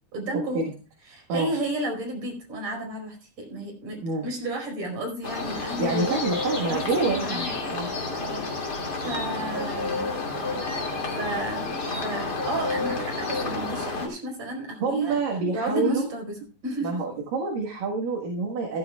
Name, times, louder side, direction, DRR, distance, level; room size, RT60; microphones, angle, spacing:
voice 1, 0.1-0.7 1.1-6.2 6.7-7.5 8.2-8.5 9.0-10.1 11.2-15.2 15.5-16.3 16.6-17.0, right 1 dB, 40° right, 1 dB, 5.4 m, -32 dB
sound 1, 5.2-14.1, left 3 dB, 30° left, 1.9 m, -30 dB
voice 2, 5.8-7.4 7.7-7.9 9.1-9.3 14.8-16.1 16.8-18.8, right 3 dB, 60° right, 0 dB, 2.8 m, -27 dB
15.5 x 13.0 x 2.3 m, 0.34 s
omnidirectional pair, 5.3 m